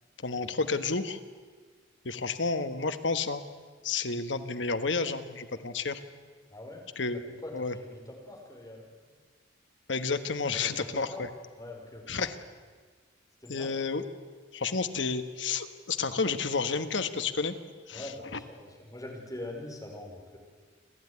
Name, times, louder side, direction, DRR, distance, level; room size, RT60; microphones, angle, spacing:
voice 1, 0.2-1.2 2.0-3.4 3.8-6.0 7.0-7.7 9.9-11.1 12.1-12.3 13.5-14.0 14.5-17.5 17.9-18.0, left 4 dB, 70° left, 10 dB, 1.4 m, -30 dB
voice 2, 6.5-6.9 7.4-8.9 10.5-11.2 11.6-12.2 13.4-13.8 17.9-20.4, left 1 dB, 20° left, 0 dB, 5.0 m, -43 dB
29.5 x 12.5 x 9.7 m, 1.6 s
head